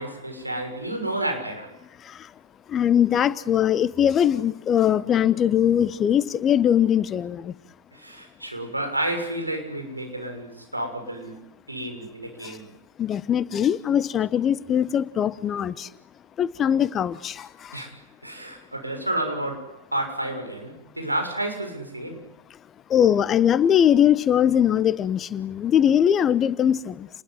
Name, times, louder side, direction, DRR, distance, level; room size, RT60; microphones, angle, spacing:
voice 1, 0.0-1.7 7.9-12.7 17.7-18.0 18.2-22.2, right 1 dB, 85° right, 6.5 m, -31 dB
voice 2, 2.0-2.3 2.7-7.6 12.4-12.6 13.0-15.9 16.4-17.8 22.9-27.1, left 9 dB, 25° left, 1.1 m, -21 dB
29.5 x 21.0 x 9.5 m
figure-of-eight pair, 90°, 0 cm